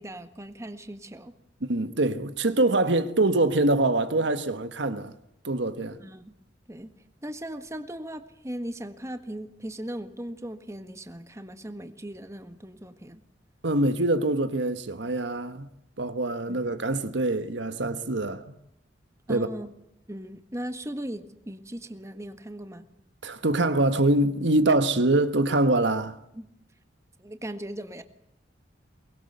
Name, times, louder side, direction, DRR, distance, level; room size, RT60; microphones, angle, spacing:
voice 1, 0.0-1.3 6.0-6.3 6.7-6.9 7.2-13.2 16.5-16.7 19.3-19.7 20.1-22.9 26.3-26.5 27.2-28.0, right 1 dB, 15° right, 1.6 m, -38 dB
voice 2, 1.6-5.1 5.4-6.0 13.6-15.7 16.0-18.5 19.3-19.5 23.2-26.2, right 2 dB, 70° right, 1.4 m, -24 dB
23.5 x 20.5 x 8.0 m
head